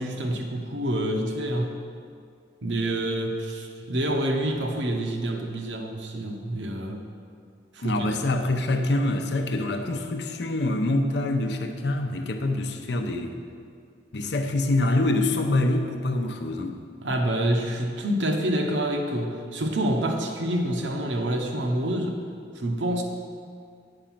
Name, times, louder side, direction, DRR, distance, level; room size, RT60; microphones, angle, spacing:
voice 1, 0.0-1.8 2.6-7.0 7.7-8.1 17.0-22.2 22.5-23.0, right 1 dB, 75° right, 2 dB, 0.9 m, -27 dB
voice 2, 7.8-13.4 14.1-16.8, left 2 dB, 65° left, 5 dB, 0.7 m, -25 dB
8.8 x 5.1 x 5.9 m, 2.3 s
head